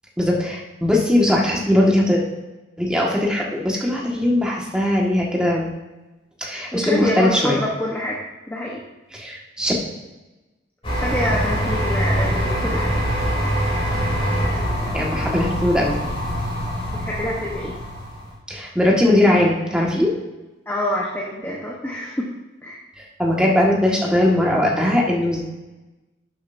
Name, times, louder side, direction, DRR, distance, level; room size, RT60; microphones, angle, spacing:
voice 1, 0.2-2.2 2.8-5.7 6.4-7.6 9.1-9.7 14.9-16.0 18.5-20.1 23.0-25.4, left 1 dB, 5° right, -3 dB, 1.7 m, -19 dB
voice 2, 6.7-8.2 8.5-8.8 10.9-12.9 13.4-13.5 16.9-17.8 20.7-22.3 22.6-22.8, left 1 dB, 10° left, -3 dB, 1.1 m, -26 dB
sound 1, 10.8-18.3, equal, 30° left, 2.9 m, -24 dB
11.5 x 7.8 x 2.7 m, 1.1 s
head